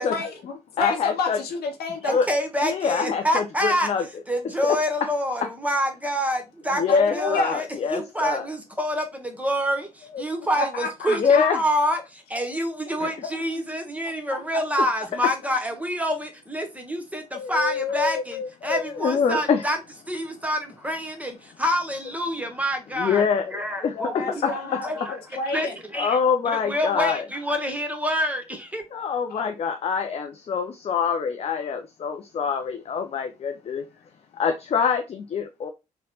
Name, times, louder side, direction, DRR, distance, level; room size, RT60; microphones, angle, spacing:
voice 1, 0.0-2.2 6.9-7.6 10.6-11.5 14.3-14.4 15.2-15.3 23.9-25.8 29.3-29.4, left 3 dB, 60° left, 0.8 m, -29 dB
voice 2, 0.8-1.4 2.1-2.3 2.6-4.1 4.7-4.8 6.7-8.5 10.1-10.2 11.2-11.6 13.0-13.1 14.8-14.9 17.3-19.6 22.9-24.8 25.9-27.3 28.9-33.8 34.3-35.7, left 6 dB, 35° left, 0.4 m, -25 dB
voice 3, 2.0-3.9 4.3-6.8 7.1-7.7 7.9-19.8 20.1-25.1 25.5-26.2 26.4-28.8, equal, 10° right, 0.9 m, -27 dB
3.9 x 2.1 x 2.8 m
figure-of-eight pair, 40°, 19 cm